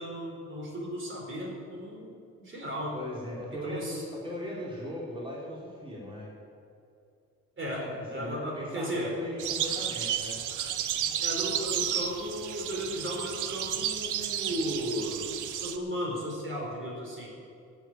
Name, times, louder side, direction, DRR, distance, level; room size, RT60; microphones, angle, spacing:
voice 1, 0.0-3.0 3.6-4.0 7.6-7.8 8.1-9.2 11.2-17.3, equal, 40° right, -1 dB, 4.3 m, -35 dB
voice 2, 2.9-6.3 7.7-10.4, equal, 15° right, -5 dB, 3.6 m, -38 dB
sound 1, 9.4-15.8, right 9 dB, 80° right, 1.0 m, -32 dB
13.5 x 8.4 x 9.0 m, 2.5 s
cardioid pair, 90°, 30 cm